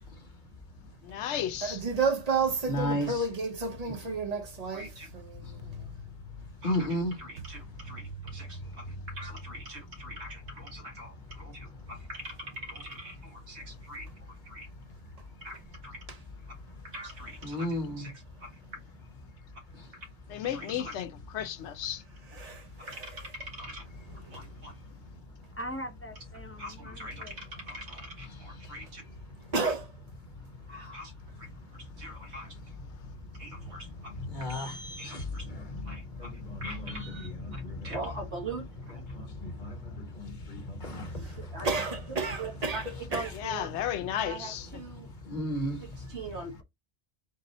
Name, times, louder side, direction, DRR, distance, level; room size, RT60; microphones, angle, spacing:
voice 1, 1.0-1.8 20.3-22.0 43.3-44.7, left 10 dB, 85° left, 0.9 m, -33 dB
voice 2, 1.6-5.9 22.4-22.6 29.5-29.8 41.6-42.8 43.1-43.3, right 4 dB, 40° right, 0.7 m, -31 dB
voice 3, 2.7-3.3 3.9-4.0 5.4-6.1 6.6-7.1 17.4-18.1 34.2-37.9 39.1-41.4 45.0-46.1, left 1 dB, 45° left, 1.1 m, -35 dB
voice 4, 4.7-5.1 6.6-8.0 8.3-14.7 15.4-16.0 16.8-18.6 19.9-20.1 20.5-20.9 22.9-23.8 24.3-24.7 26.6-29.0 29.6-29.7 30.7-31.1 31.4-31.5 31.8-32.6 33.4-34.1 34.4-35.5 35.9-39.0 41.1-41.3 41.5-41.7 42.1-42.8 43.1-43.7 44.2-45.1 45.8-46.6, right 2 dB, 80° right, 1.9 m, -43 dB
voice 5, 25.3-27.3, equal, 15° left, 0.7 m, -42 dB
3.9 x 2.6 x 4.1 m
omnidirectional pair, 1.1 m